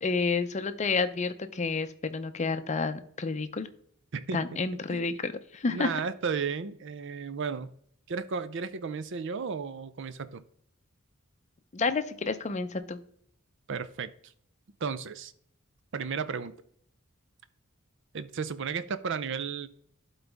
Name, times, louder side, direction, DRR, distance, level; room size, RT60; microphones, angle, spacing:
voice 1, 0.0-3.7 4.3-5.9 11.7-13.0, left 4 dB, 35° left, 11 dB, 0.5 m, -30 dB
voice 2, 4.1-4.4 4.9-5.1 5.7-7.7 8.1-10.4 13.7-14.1 14.8-15.3 15.9-16.5 18.1-19.7, right 5 dB, 65° right, 13 dB, 0.5 m, -33 dB
12.0 x 4.0 x 3.5 m, 0.66 s
head